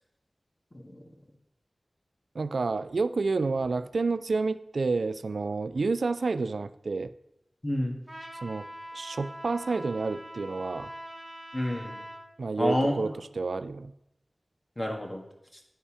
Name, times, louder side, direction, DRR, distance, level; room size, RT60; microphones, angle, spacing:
voice 1, 2.3-7.1 8.4-8.7 8.9-10.9 12.4-13.9, right 3 dB, 90° right, 13 dB, 0.3 m, -29 dB
voice 2, 7.6-8.0 11.5-12.0 12.6-13.1 14.8-15.2, left 1 dB, 35° left, 1 dB, 1.7 m, -29 dB
Trumpet, 8.1-12.3, equal, 15° right, 1.3 m, -43 dB
9.8 x 5.4 x 4.9 m, 0.85 s
wide cardioid pair, 65°, 0 cm